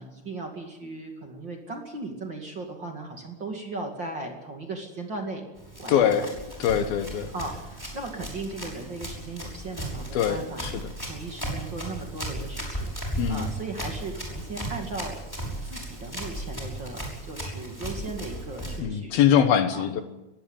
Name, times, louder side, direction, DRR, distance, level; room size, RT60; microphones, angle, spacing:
voice 1, 0.0-5.4 5.8-6.3 7.3-13.0 13.3-19.1 19.7-19.9, right 3 dB, 35° right, 2 dB, 2.4 m, -37 dB
Run, 5.6-18.8, right 1 dB, 5° left, 5.4 m, -36 dB
voice 2, 5.9-6.3 6.6-7.3 10.1-10.7 13.2-13.5 18.8-20.0, left 9 dB, 70° left, 9 dB, 2.9 m, -23 dB
21.5 x 16.5 x 9.0 m, 1.0 s
omnidirectional pair, 4.6 m